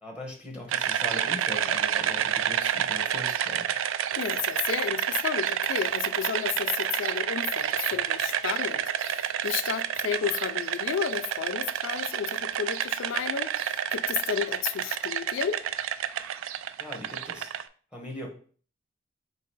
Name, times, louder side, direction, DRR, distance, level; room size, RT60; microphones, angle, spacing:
voice 1, 0.0-3.7 16.8-17.5 17.9-18.3, left 1 dB, 5° right, 1.1 m, -40 dB
sound 1, 0.7-17.6, right 9 dB, 90° right, 0.3 m, -29 dB
voice 2, 4.1-15.6, left 8 dB, 85° left, 0.4 m, -32 dB
3.9 x 2.8 x 4.5 m
head